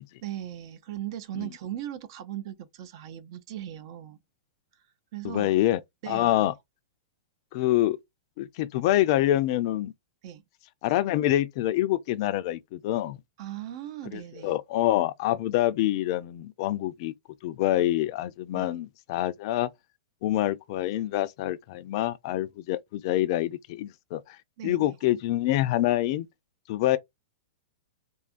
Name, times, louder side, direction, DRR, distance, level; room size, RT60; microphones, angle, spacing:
voice 1, 0.2-4.2 5.1-5.6 6.0-6.5 10.2-10.4 13.4-14.5 18.5-18.8 24.6-25.0, right 12 dB, 55° right, 0.5 m, -38 dB
voice 2, 5.2-5.8 6.1-6.5 7.5-8.0 8.4-9.9 10.8-13.2 14.1-17.1 17.4-19.7 20.2-24.4 24.6-26.3 26.7-27.0, left 14 dB, 50° left, 0.4 m, -26 dB
2.7 x 2.3 x 2.4 m
hypercardioid pair, 130°, 3 cm